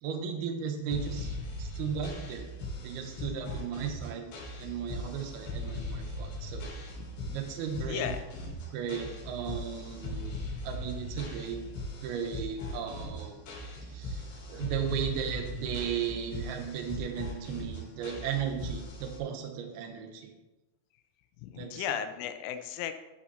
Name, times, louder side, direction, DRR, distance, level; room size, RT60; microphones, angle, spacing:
voice 1, 0.0-2.5 2.8-4.3 4.6-6.6 7.3-8.1 8.7-10.3 10.6-11.6 12.0-13.4 13.9-20.3 21.6-21.9, right 7 dB, 70° right, 4 dB, 2.6 m, -36 dB
sound 1, 0.9-19.2, left 1 dB, 70° left, 5.6 m, -39 dB
voice 2, 7.9-8.2 21.4-23.0, left 9 dB, 85° left, 8 dB, 3.4 m, -35 dB
14.0 x 5.8 x 4.3 m, 1.0 s
omnidirectional pair, 5.7 m